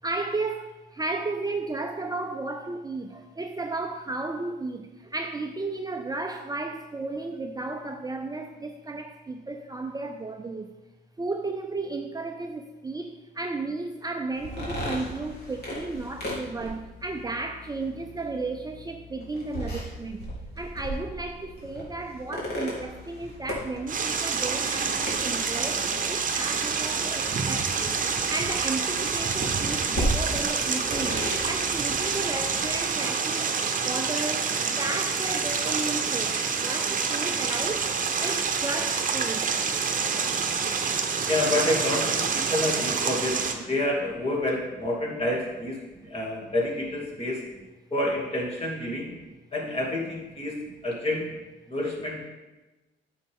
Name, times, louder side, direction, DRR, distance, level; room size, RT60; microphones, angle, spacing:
voice 1, 0.0-10.7 11.2-20.3 20.6-33.6 33.8-37.9 38.2-39.5 45.9-46.1 49.1-49.3, right 3 dB, 20° right, 4 dB, 0.6 m, -34 dB
sound 1, 14.3-32.9, equal, 55° left, 3.0 m, -37 dB
sound 2, 23.9-43.6, right 5 dB, 40° right, 0.9 m, -27 dB
voice 2, 41.2-45.8 46.1-47.4 47.9-49.1 49.5-50.6 50.8-51.3 51.7-52.3, left 1 dB, 30° left, -3 dB, 2.7 m, -28 dB
9.1 x 7.1 x 3.7 m, 1.1 s
cardioid pair, 90°, 20 cm